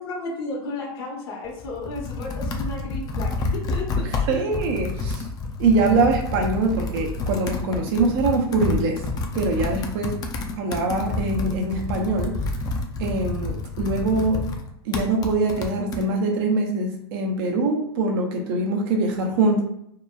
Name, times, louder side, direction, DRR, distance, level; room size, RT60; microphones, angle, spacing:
voice 1, 0.0-4.0 4.3-4.4, left 2 dB, 65° left, 0 dB, 1.0 m, -33 dB
Computer keyboard, 1.4-16.1, left 3 dB, 25° left, 0.4 m, -29 dB
voice 2, 4.0-5.3 5.6-9.0 9.3-10.2 10.6-12.4 13.0-14.4 14.8-19.6, right 3 dB, 55° right, 1 dB, 0.6 m, -23 dB
2.9 x 2.1 x 2.3 m, 0.75 s
hypercardioid pair, 110°, 14 cm